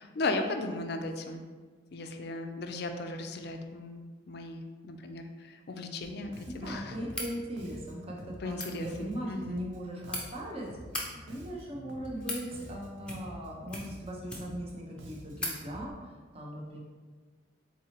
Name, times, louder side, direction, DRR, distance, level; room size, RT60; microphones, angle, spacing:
voice 1, 0.0-1.4 1.9-6.9 8.4-9.6, left 2 dB, 55° left, 5 dB, 0.4 m, -36 dB
Bass guitar, 6.0-15.9, equal, 70° right, 0.6 m, -49 dB
voice 2, 6.4-10.7 11.1-16.8, right 1 dB, 30° right, -2 dB, 0.8 m, -39 dB
sound 1, 7.1-7.3 8.4-8.7 9.7-10.2 10.8-11.1 11.9-12.5 13.0-13.4 13.7-14.7 15.0-15.1 15.4-15.6, left 1 dB, 5° left, 0.6 m, -38 dB
4.7 x 3.9 x 2.9 m, 1.4 s
head